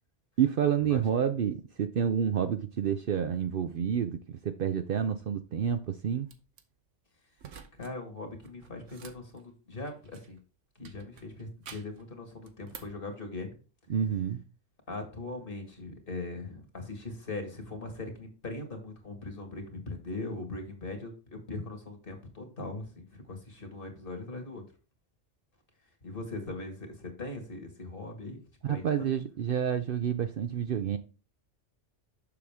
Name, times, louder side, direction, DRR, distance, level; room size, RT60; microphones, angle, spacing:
voice 1, 0.4-6.3 13.9-14.4 28.6-31.0, right 8 dB, 60° right, 0.7 m, -29 dB
sound 1, 6.3-6.6 7.4-7.9 8.2-10.4 10.8-12.0 12.4-13.0, right 7 dB, 85° right, 1.2 m, -50 dB
voice 2, 7.7-10.4 10.8-13.6 14.9-24.6 26.0-28.4 28.7-29.1, left 2 dB, 50° left, 2.0 m, -40 dB
6.9 x 6.5 x 3.5 m
omnidirectional pair, 1.2 m